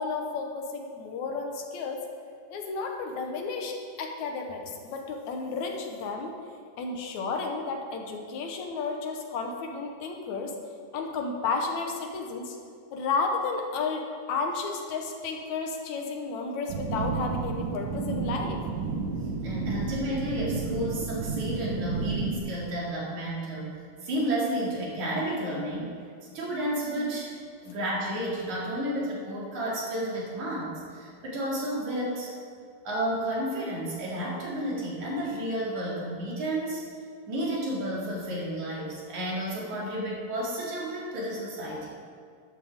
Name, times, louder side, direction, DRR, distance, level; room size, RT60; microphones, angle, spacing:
voice 1, 0.0-2.1 2.5-6.4 6.8-10.6 10.9-12.6 12.9-14.0 14.3-18.6, left 4 dB, 75° left, 3 dB, 2.4 m, -32 dB
sound 1, 16.7-22.4, right 5 dB, 90° right, 1.0 m, -31 dB
voice 2, 19.1-26.0 26.3-27.4 27.6-32.4 32.8-36.8 37.3-42.0, right 1 dB, 70° right, -4 dB, 3.8 m, -31 dB
13.0 x 11.5 x 3.6 m, 2.2 s
omnidirectional pair, 3.4 m